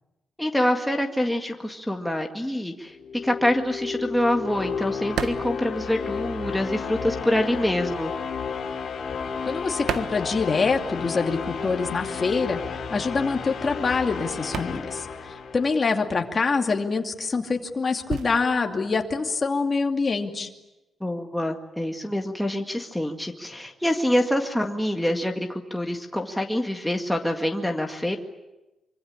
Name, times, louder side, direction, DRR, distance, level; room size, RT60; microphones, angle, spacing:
voice 1, 0.4-3.0 3.2-8.1 21.0-28.2, left 1 dB, 5° left, 2 dB, 1.9 m, -26 dB
sound 1, 2.9-16.0, left 6 dB, 60° left, 3.8 m, -33 dB
sound 2, 3.4-6.7 7.0-11.1 11.4-20.1, right 7 dB, 90° right, 1.5 m, -37 dB
voice 2, 9.5-12.6 12.9-15.1 15.5-20.5, left 4 dB, 30° left, 3 dB, 2.6 m, -25 dB
25.0 x 25.0 x 8.7 m, 1.0 s
wide cardioid pair, 145°, 0 cm